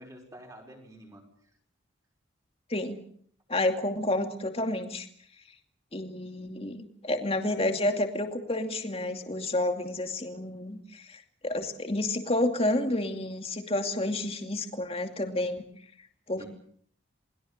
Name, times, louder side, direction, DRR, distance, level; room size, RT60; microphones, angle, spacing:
voice 1, 0.0-1.5 16.4-16.5, equal, 15° right, 2 dB, 5.4 m, -49 dB
voice 2, 3.5-5.1 5.9-15.6 16.3-16.5, left 1 dB, 30° left, 5 dB, 2.6 m, -30 dB
28.0 x 22.0 x 6.6 m, 0.62 s
head